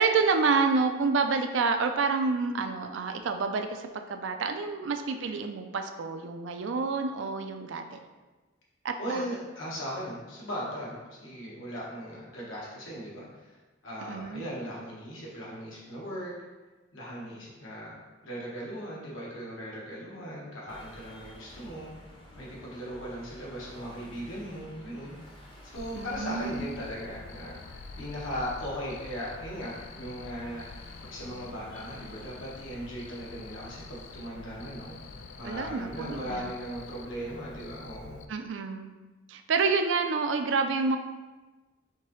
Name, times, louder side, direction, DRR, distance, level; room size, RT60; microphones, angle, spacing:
voice 1, 0.0-8.0 8.8-9.2 14.0-14.4 25.9-26.6 35.4-36.5 38.3-38.9 39.3-41.0, right 4 dB, 65° right, 7 dB, 0.4 m, -28 dB
voice 2, 9.0-13.5 13.8-16.3 16.9-18.0 18.2-21.9 22.4-25.1 25.6-38.2, equal, 80° left, -5 dB, 1.3 m, -38 dB
sound 1, 20.7-37.7, left 1 dB, 25° left, 0.7 m, -52 dB
Cricket, 25.8-38.3, left 4 dB, 60° left, 0.3 m, -47 dB
4.5 x 3.7 x 3.1 m, 1.2 s
head